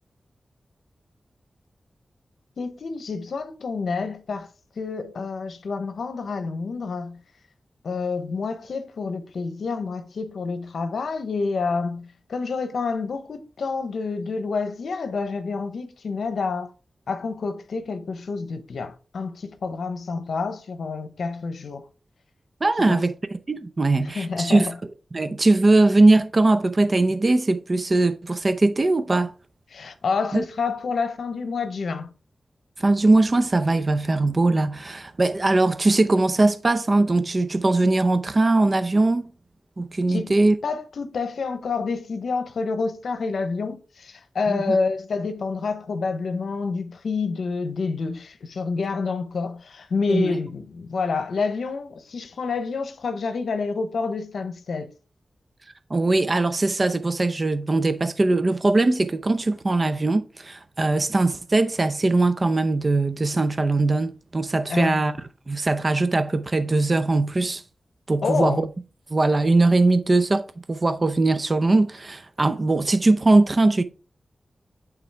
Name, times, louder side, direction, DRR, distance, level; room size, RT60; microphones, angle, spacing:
voice 1, 2.6-4.5 4.8-7.2 7.8-16.7 17.1-21.9 22.9-23.0 24.0-24.7 29.7-32.1 40.1-40.3 40.6-54.9 64.7-65.0 68.2-68.6, left 4 dB, 85° left, 0.8 m, -28 dB
voice 2, 22.6-24.7 25.1-29.3 30.3-30.5 32.8-39.3 39.8-40.6 44.5-44.8 50.1-50.3 55.9-65.1 65.5-67.6 68.1-68.6 69.1-73.8, right 2 dB, 40° right, 0.6 m, -20 dB
9.0 x 3.7 x 3.4 m
cardioid pair, 55°, 0 cm